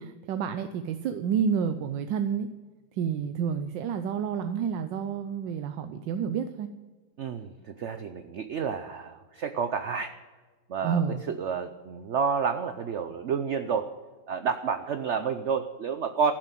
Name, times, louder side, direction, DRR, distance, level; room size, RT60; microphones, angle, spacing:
voice 1, 0.0-2.5 3.0-6.7 10.8-11.2, right 7 dB, 85° right, 9 dB, 1.4 m, -29 dB
voice 2, 7.2-7.5 7.8-10.1 10.7-13.9 14.3-16.3, right 6 dB, 60° right, 9 dB, 0.7 m, -30 dB
14.5 x 7.6 x 9.1 m, 1.3 s
omnidirectional pair, 1.9 m